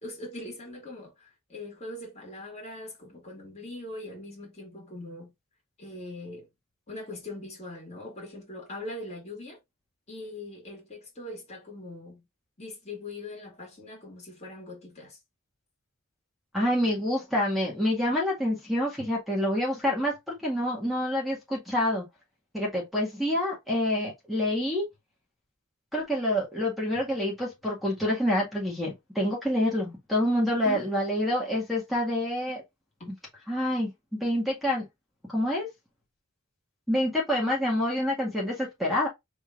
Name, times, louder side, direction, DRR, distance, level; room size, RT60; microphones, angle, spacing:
voice 1, 0.0-5.3 5.8-6.5 6.9-9.6 10.1-12.2 12.6-15.2 30.5-31.0 33.0-33.2, left 2 dB, 30° left, 2.2 m, -41 dB
voice 2, 16.5-22.0 22.5-24.9 25.9-32.6 33.5-34.8 35.3-35.7 36.9-39.1, left 1 dB, ahead, 1.8 m, -27 dB
5.2 x 3.5 x 2.5 m
head